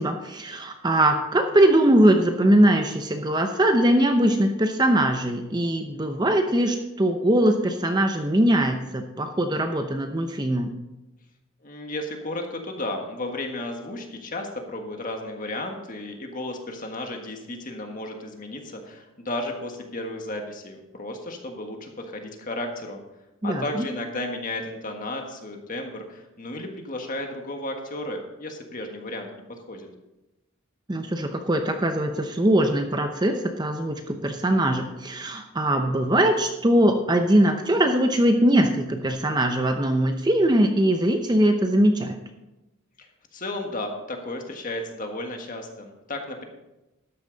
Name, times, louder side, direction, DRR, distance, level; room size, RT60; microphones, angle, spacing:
voice 1, 0.0-10.7 23.4-23.9 30.9-42.2, right 1 dB, 20° right, 5 dB, 0.7 m, -21 dB
voice 2, 11.6-23.0 23.4-29.3 29.7-29.9 43.0-43.1 43.3-46.5, left 1 dB, 40° left, 3 dB, 1.6 m, -33 dB
13.0 x 9.8 x 4.0 m, 0.99 s
head